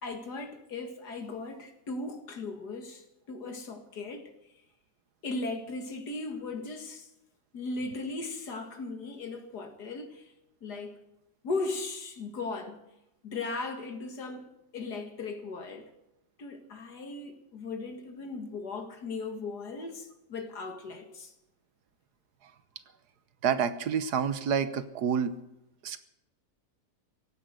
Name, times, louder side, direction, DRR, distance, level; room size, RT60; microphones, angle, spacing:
voice 1, 0.0-4.3 5.2-7.1 7.5-10.3 10.6-11.0 11.4-12.8 13.2-15.9 16.4-21.3, left 3 dB, 75° left, 5 dB, 2.5 m, -37 dB
voice 2, 23.4-25.4 25.8-26.0, right 7 dB, 75° right, 12 dB, 1.5 m, -28 dB
17.0 x 10.0 x 8.0 m, 0.89 s
omnidirectional pair, 1.8 m